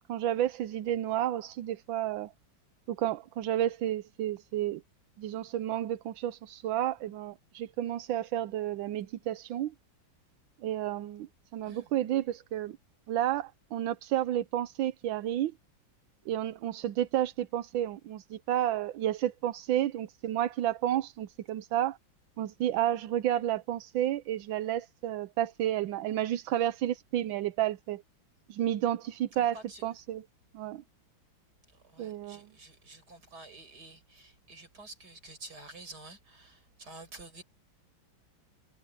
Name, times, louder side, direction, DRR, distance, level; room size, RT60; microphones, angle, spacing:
voice 1, 0.1-2.3 2.9-4.8 5.2-9.7 10.6-12.8 13.1-15.6 16.3-22.0 22.4-28.0 28.5-29.6 29.8-30.2 30.5-30.8 32.0-32.5, right 12 dB, 80° right, 1.4 m, -31 dB
voice 2, 29.4-29.8 31.7-37.4, right 2 dB, 55° right, 5.8 m, -50 dB
omnidirectional pair, 2.1 m